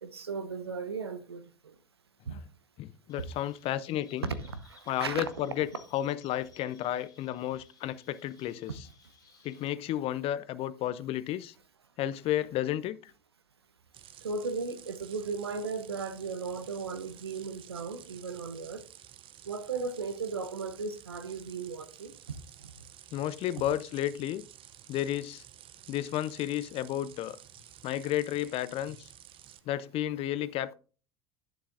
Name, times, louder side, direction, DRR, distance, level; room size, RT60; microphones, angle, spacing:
voice 1, 0.0-1.4 2.3-2.4 3.2-3.3 4.2-5.3 14.2-18.8 19.5-22.1 22.6-22.7, right 4 dB, 90° right, 0.8 m, -36 dB
voice 2, 2.8-4.3 4.9-5.7 5.9-8.8 9.4-11.5 12.0-13.0 23.1-24.5 24.9-25.4 25.9-27.4 27.8-29.1 29.7-30.7, left 12 dB, 50° left, 0.6 m, -32 dB
Chirp tweet, 3.1-9.7, left 5 dB, 30° left, 1.9 m, -61 dB
sound 1, 13.9-29.6, right 11 dB, 45° right, 0.6 m, -53 dB
11.0 x 6.9 x 2.5 m
hypercardioid pair, 75°, 13 cm